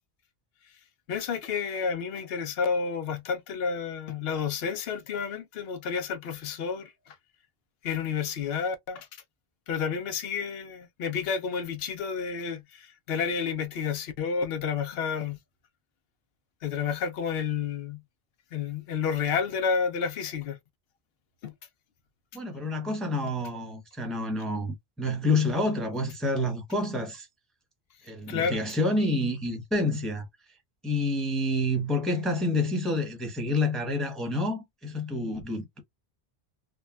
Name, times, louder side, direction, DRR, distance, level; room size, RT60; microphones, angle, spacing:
voice 1, 1.1-7.2 7.8-9.1 9.7-15.4 16.6-18.0 18.5-20.6 21.4-21.5 22.3-22.4 28.3-28.6, left 6 dB, 70° left, 0.9 m, -30 dB
voice 2, 22.3-27.3 28.0-30.2 30.8-35.8, left 1 dB, ahead, 0.8 m, -28 dB
3.4 x 2.1 x 2.2 m
omnidirectional pair, 1.0 m